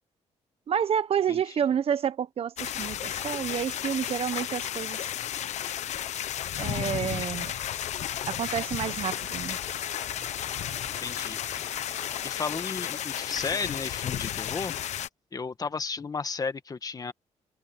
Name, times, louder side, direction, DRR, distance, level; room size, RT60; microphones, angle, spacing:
voice 1, 0.7-5.1 6.6-7.5 8.3-9.6, right 8 dB, 55° right, 1.1 m, -29 dB
sound 1, 2.6-15.1, left 11 dB, 70° left, 1.1 m, -33 dB
sound 2, 5.5-12.3, right 3 dB, 25° right, 5.8 m, -52 dB
voice 2, 11.0-11.7 12.2-14.7 15.3-17.1, left 4 dB, 30° left, 1.5 m, -34 dB
cardioid pair, 110°, 12 cm